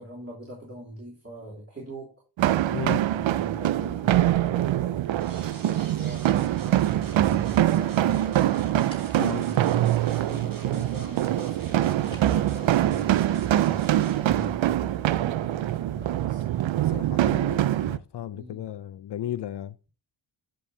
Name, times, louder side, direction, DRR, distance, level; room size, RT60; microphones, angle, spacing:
voice 1, 0.0-2.1 3.0-8.5 9.3-16.7 18.3-18.6, equal, 30° right, 3.1 m, -42 dB
sound 1, 2.4-18.0, right 13 dB, 75° right, 0.5 m, -24 dB
voice 2, 2.7-3.0 9.2-9.5 16.8-19.8, left 11 dB, 60° left, 0.5 m, -35 dB
sound 2, 5.2-14.4, right 4 dB, 45° right, 1.5 m, -48 dB
sound 3, 8.9-10.5 10.8-11.3 11.6-12.7, left 1 dB, 10° left, 2.3 m, -52 dB
13.5 x 5.4 x 2.7 m
cardioid pair, 45°, 47 cm